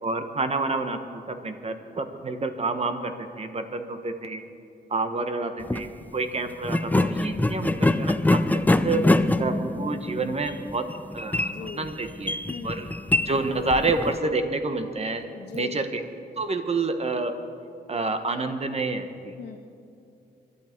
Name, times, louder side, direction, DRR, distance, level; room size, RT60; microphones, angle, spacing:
voice 1, 0.0-1.0 1.3-4.4 4.9-8.4 8.8-9.0 9.4-10.8 11.1-12.4 12.6-12.9 13.2-15.2 15.5-15.9 16.4-17.3 17.9-19.3, right 3 dB, 35° right, 7 dB, 1.3 m, -28 dB
sound 1, 5.6-5.9 6.6-14.1, left 2 dB, 10° left, 0.5 m, -24 dB
voice 2, 11.4-12.0 12.5-13.0 15.3-15.9 19.1-19.6, left 6 dB, 70° left, -2 dB, 1.4 m, -41 dB
25.5 x 11.5 x 4.6 m, 2.7 s
cardioid pair, 100°, 17 cm